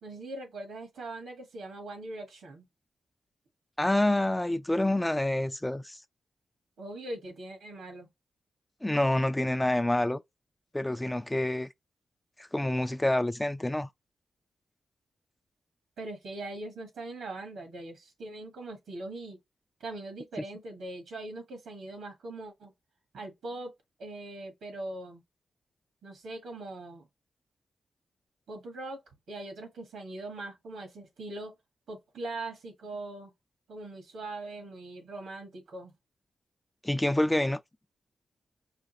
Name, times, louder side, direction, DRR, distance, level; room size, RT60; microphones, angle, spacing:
voice 1, 0.0-2.7 6.8-8.1 16.0-19.4 19.8-22.7 23.1-23.7 24.0-25.2 26.0-27.1 28.5-31.5 31.9-33.3 33.7-35.9, right 2 dB, 90° right, 1.5 m, -41 dB
voice 2, 3.8-6.0 8.8-10.2 10.7-11.7 12.4-13.9 36.8-37.6, left 1 dB, 15° left, 0.3 m, -27 dB
5.0 x 2.5 x 2.8 m
cardioid pair, 60°, 0 cm